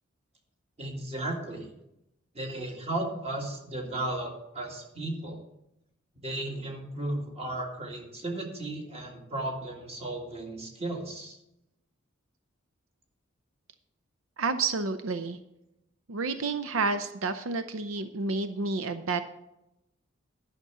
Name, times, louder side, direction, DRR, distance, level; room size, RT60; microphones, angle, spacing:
voice 1, 0.8-1.7 2.3-5.4 6.2-11.4, right 1 dB, 30° right, 1 dB, 2.0 m, -35 dB
voice 2, 14.4-15.4 16.1-19.2, right 4 dB, 85° right, 10 dB, 0.6 m, -30 dB
11.0 x 6.0 x 6.8 m, 0.86 s
head